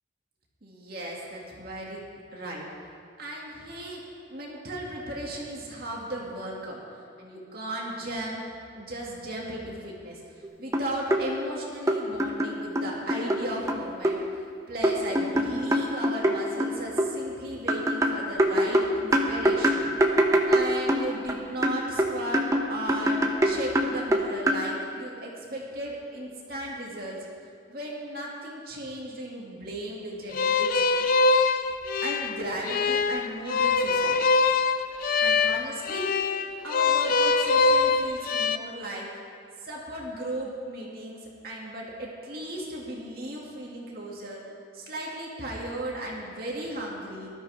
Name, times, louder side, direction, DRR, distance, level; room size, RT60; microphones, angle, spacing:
voice 1, 0.6-2.0 2.3-2.6 3.2-4.0 4.3-6.8 7.2-8.4 8.7-10.2 10.6-14.2 14.7-19.9 20.5-27.3 27.7-30.8 32.0-34.2 35.2-36.1 36.4-39.1 39.6-44.4 44.7-47.3, right 1 dB, 50° right, -3 dB, 2.6 m, -36 dB
sound 1, 10.4-10.5 10.7-11.2 11.9-13.4 13.7-14.2 14.8-17.1 17.7-21.3 21.6-24.6, right 1 dB, 15° right, 1.0 m, -24 dB
sound 2, 30.3-38.6, left 4 dB, 50° left, 0.5 m, -23 dB
19.5 x 13.0 x 3.7 m, 2.3 s
head